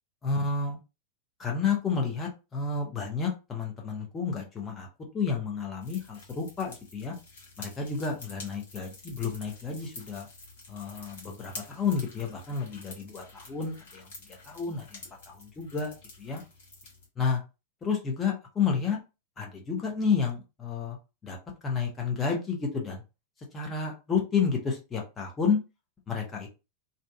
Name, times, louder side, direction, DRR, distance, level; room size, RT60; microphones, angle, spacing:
voice 1, 0.2-0.8 1.4-4.9 5.1-7.1 7.6-10.3 10.7-14.1 14.4-15.0 15.3-16.4 17.2-17.4 17.8-19.0 19.4-21.0 21.2-21.4 21.6-23.0 23.5-25.6 26.1-26.5, left 5 dB, 20° left, 0 dB, 0.8 m, -30 dB
sound 1, 5.8-17.1, left 3 dB, 55° left, 1.3 m, -48 dB
2.6 x 2.3 x 2.3 m, 0.28 s
figure-of-eight pair, 90°, 0 cm